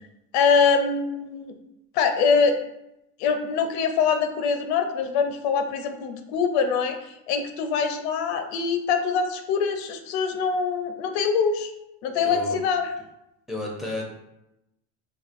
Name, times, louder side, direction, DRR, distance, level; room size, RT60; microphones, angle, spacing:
voice 1, 0.3-1.5 1.9-2.6 3.2-11.7 12.0-12.9, left 5 dB, 85° left, 7 dB, 0.6 m, -24 dB
voice 2, 12.1-12.6 13.5-14.1, left 1 dB, ahead, 0 dB, 0.4 m, -32 dB
4.2 x 2.6 x 2.5 m, 0.86 s
cardioid pair, 150°, 32 cm